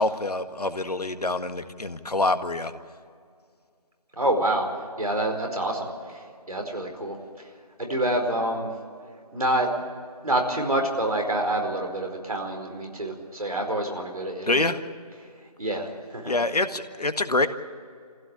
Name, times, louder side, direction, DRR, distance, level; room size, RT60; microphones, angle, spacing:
voice 1, 0.0-2.7 14.5-14.8 16.2-17.5, left 2 dB, 75° left, 9 dB, 1.6 m, -25 dB
voice 2, 4.1-4.7 5.0-7.2 7.8-8.7 9.3-9.7 10.2-14.7 15.6-16.3, right 1 dB, 65° right, 2 dB, 4.6 m, -27 dB
24.0 x 16.0 x 8.8 m, 2.1 s
figure-of-eight pair, 175°, 20 cm